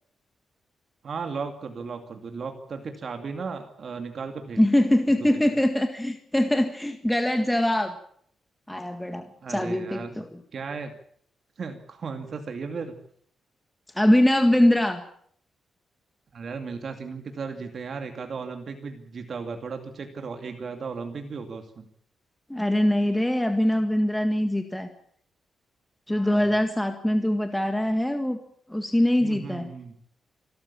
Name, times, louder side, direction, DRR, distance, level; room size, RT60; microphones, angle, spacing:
voice 1, 1.0-4.6 5.2-5.5 9.4-10.2 10.5-10.9 11.6-12.9 16.3-21.9 26.1-26.6 29.2-29.9, right 5 dB, 50° right, 6 dB, 2.5 m, -35 dB
voice 2, 4.6-7.9 8.7-10.4 13.9-15.0 22.5-24.9 26.1-28.4 28.7-29.7, left 1 dB, 5° left, 6 dB, 1.7 m, -23 dB
26.5 x 13.0 x 8.6 m, 0.64 s
cardioid pair, 120°, 0 cm